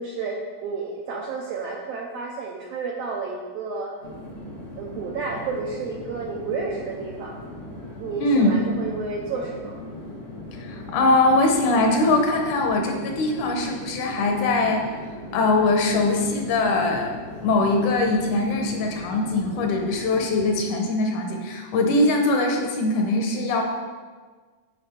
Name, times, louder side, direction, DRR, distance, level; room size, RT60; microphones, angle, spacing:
voice 1, 0.0-3.9 4.8-7.4 8.0-9.8, right 4 dB, 80° right, -1 dB, 1.5 m, -31 dB
sound 1, 4.0-20.5, left 1 dB, 60° left, 0.6 m, -38 dB
voice 2, 8.2-8.6 10.5-14.8 15.3-23.6, left 2 dB, 80° left, 2 dB, 2.3 m, -22 dB
8.9 x 4.3 x 4.2 m, 1.5 s
omnidirectional pair, 3.5 m